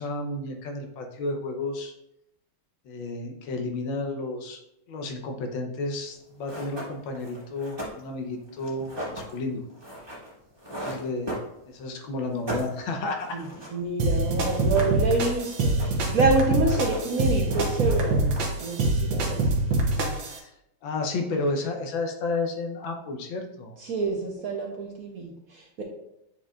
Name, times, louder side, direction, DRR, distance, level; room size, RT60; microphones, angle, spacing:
voice 1, 0.0-1.9 2.9-4.6 4.9-9.6 10.7-11.3 11.7-13.4 20.3-20.5 20.8-23.7, left 2 dB, 75° left, 3 dB, 1.5 m, -32 dB
sound 1, 6.1-6.2 6.4-11.9 12.2-13.8 14.1-14.2 14.4-15.3 15.6-16.2 16.5-17.2 17.5-18.7, equal, 15° right, 1.6 m, -38 dB
voice 2, 13.3-19.4 19.9-20.2 23.8-25.8, right 3 dB, 55° right, 0 dB, 1.1 m, -28 dB
sound 2, 14.0-20.4, right 2 dB, 70° right, 1.6 m, -25 dB
8.9 x 4.4 x 2.4 m, 0.80 s
omnidirectional pair, 2.2 m